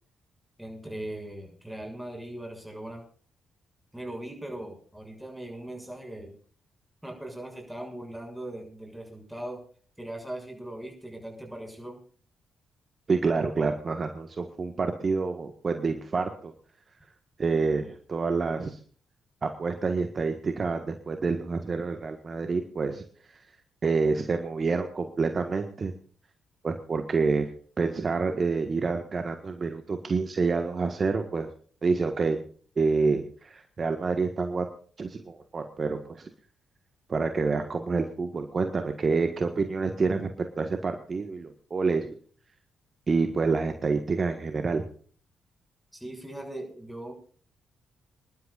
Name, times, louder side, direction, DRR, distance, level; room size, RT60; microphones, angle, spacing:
voice 1, 0.6-3.0 3.9-6.3 7.0-9.7 10.0-12.0 45.9-47.1, right 1 dB, 5° right, 2 dB, 6.8 m, -39 dB
voice 2, 13.1-16.5 17.4-18.8 19.4-23.0 23.8-25.9 26.6-27.5 27.8-31.5 31.8-32.4 32.8-34.7 35.0-36.3 37.1-42.1 43.1-44.8, right 4 dB, 45° right, 6 dB, 1.6 m, -28 dB
26.5 x 11.5 x 2.5 m, 0.43 s
hypercardioid pair, 45°, 0 cm